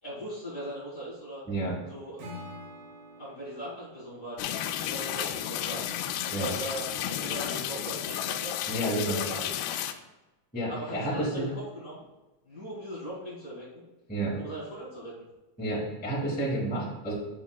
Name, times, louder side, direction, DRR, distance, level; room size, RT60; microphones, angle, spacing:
voice 1, 0.0-1.4 1.9-2.3 3.2-4.4 4.6-5.9 6.1-8.6 9.1-9.8 10.7-12.1 12.4-13.9 14.4-15.1, equal, 30° left, -8 dB, 1.4 m, -39 dB
Acoustic guitar / Strum, 2.2-5.4, left 1 dB, 70° right, 3.9 m, -47 dB
sound 1, 4.4-9.9, left 11 dB, 85° left, 2.5 m, -32 dB
voice 2, 8.7-9.2 10.5-11.5 14.1-14.4 15.6-17.1, right 1 dB, 10° left, -7 dB, 0.4 m, -30 dB
10.0 x 6.4 x 2.3 m, 1.1 s
omnidirectional pair, 5.2 m